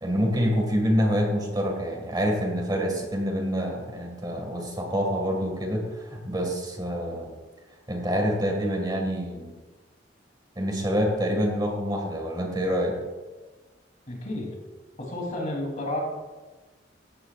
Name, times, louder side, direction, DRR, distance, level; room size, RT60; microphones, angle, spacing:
voice 1, 0.0-7.3 7.9-9.6 10.6-13.0, equal, 25° right, 1 dB, 1.9 m, -26 dB
voice 2, 14.1-14.6 15.0-16.0, left 1 dB, 40° left, 0 dB, 3.2 m, -31 dB
15.5 x 12.5 x 2.5 m, 1.3 s
head